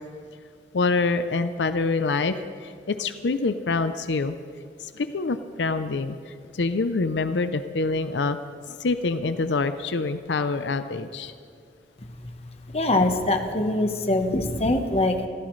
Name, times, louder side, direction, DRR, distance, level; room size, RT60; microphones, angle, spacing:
voice 1, 0.7-2.4 2.6-4.4 4.8-8.4 8.7-11.3, left 3 dB, 85° left, 10 dB, 0.6 m, -26 dB
voice 2, 12.7-15.3, left 2 dB, 35° left, 5 dB, 1.2 m, -23 dB
25.5 x 15.5 x 3.2 m, 2.2 s
head